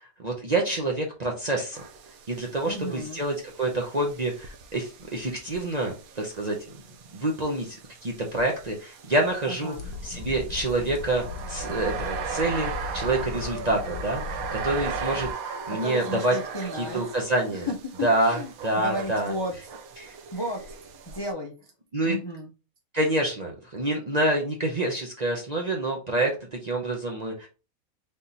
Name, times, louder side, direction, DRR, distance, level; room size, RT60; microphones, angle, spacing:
voice 1, 0.2-1.8 2.3-6.6 7.1-9.8 10.0-16.3 16.9-17.7 18.0-19.3 20.0-20.1 21.9-22.2 22.9-27.5, right 2 dB, 40° right, 0 dB, 0.6 m, -27 dB
sound 1, 1.7-21.3, right 6 dB, 75° right, 1.1 m, -38 dB
voice 2, 2.6-3.2 9.5-9.8 15.7-17.0 17.3-19.5 20.3-20.8 21.1-21.5 22.0-22.5, left 1 dB, 35° left, 0 dB, 0.4 m, -33 dB
sound 2, 9.8-15.3, left 4 dB, 90° left, 1.1 m, -37 dB
3.6 x 2.8 x 3.8 m, 0.32 s
omnidirectional pair, 1.5 m